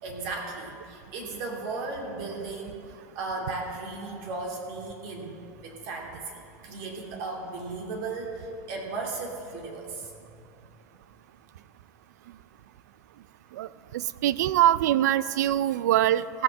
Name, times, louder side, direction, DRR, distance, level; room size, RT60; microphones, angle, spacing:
voice 1, 0.0-10.1, right 3 dB, 55° right, 0 dB, 2.7 m, -36 dB
voice 2, 13.6-16.4, right 12 dB, 85° right, 18 dB, 0.4 m, -24 dB
16.0 x 6.0 x 7.4 m, 2.6 s
supercardioid pair, 130°, 9 cm